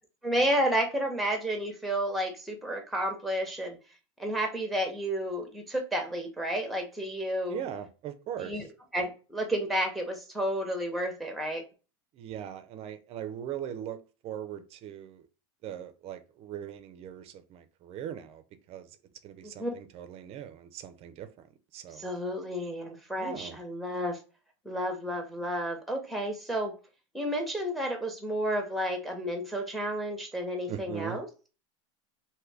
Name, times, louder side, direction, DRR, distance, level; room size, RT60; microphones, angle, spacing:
voice 1, 0.2-3.8 4.2-7.6 8.4-8.6 8.9-11.6 19.4-19.7 22.0-24.2 24.7-26.7 27.1-31.3, equal, ahead, 0.7 m, -31 dB
voice 2, 7.5-8.6 12.1-15.3 15.6-18.4 18.7-18.9 19.2-21.5 21.7-22.1 23.2-23.6 30.7-31.2, right 10 dB, 40° right, 0.4 m, -40 dB
2.6 x 2.5 x 3.2 m
supercardioid pair, 115°, 16 cm